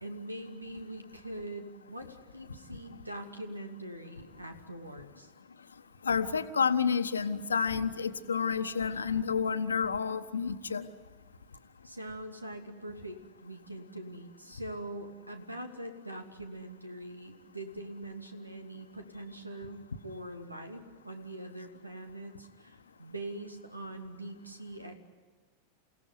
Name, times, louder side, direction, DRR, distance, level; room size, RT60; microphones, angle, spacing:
voice 1, 0.0-5.3 11.8-25.0, right 1 dB, 85° right, 6 dB, 2.7 m, -43 dB
voice 2, 6.0-10.9, left 6 dB, 75° left, 11 dB, 1.3 m, -29 dB
29.0 x 17.0 x 9.7 m, 1.4 s
figure-of-eight pair, 90°, 0 cm